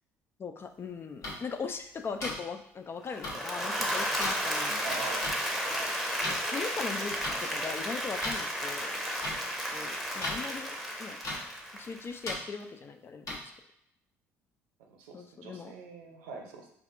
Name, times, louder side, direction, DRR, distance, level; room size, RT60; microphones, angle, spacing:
voice 1, 0.4-5.2 6.2-9.0 9.7-11.2 11.7-13.3 15.1-15.7, left 5 dB, 35° left, 7 dB, 0.4 m, -39 dB
sound 1, 1.2-1.3 2.2-2.3 3.2-3.3 4.2-4.3 5.2-5.3 6.2-6.4 7.2-7.3 8.2-8.4 9.2-9.3 10.2-10.4 11.2-11.4 12.2-12.4 13.3-13.4, left 2 dB, 50° left, 1.0 m, -34 dB
Applause / Crowd, 3.1-12.2, equal, ahead, 0.8 m, -33 dB
voice 2, 4.8-5.9 14.9-16.7, right 4 dB, 70° right, 2 dB, 0.6 m, -44 dB
4.6 x 2.4 x 2.5 m, 0.76 s
figure-of-eight pair, 55°, 7 cm